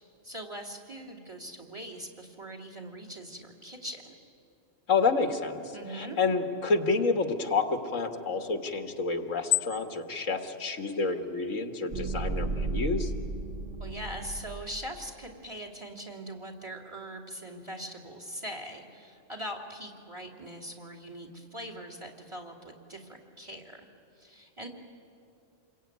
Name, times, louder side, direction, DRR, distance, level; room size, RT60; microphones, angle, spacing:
voice 1, 0.2-4.1 5.7-6.2 13.8-23.9 24.2-24.7, right 1 dB, 20° right, 3 dB, 2.6 m, -41 dB
voice 2, 4.9-5.6 5.9-13.1, left 4 dB, 85° left, 6 dB, 2.0 m, -28 dB
sound 1, 11.9-15.0, right 3 dB, 45° right, 0.8 m, -34 dB
28.0 x 22.0 x 9.4 m, 2.7 s
omnidirectional pair, 1.3 m